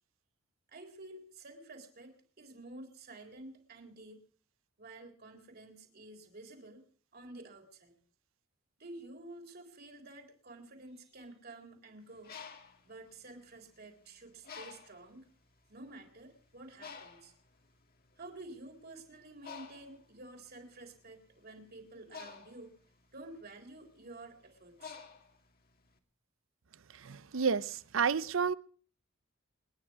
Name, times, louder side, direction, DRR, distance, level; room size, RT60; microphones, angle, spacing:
voice 1, 0.7-4.2 4.8-6.8 7.1-7.9 8.8-12.4 12.8-15.3 15.7-17.3 18.2-22.7 23.1-25.0, right 2 dB, 50° right, 3.9 m, -50 dB
Bird, 12.0-13.9 14.4-15.1 15.8-16.0 16.2-25.9, left 6 dB, 45° left, 2.1 m, -51 dB
voice 2, 26.9-28.5, right 6 dB, 70° right, 0.7 m, -31 dB
28.5 x 10.0 x 4.7 m
head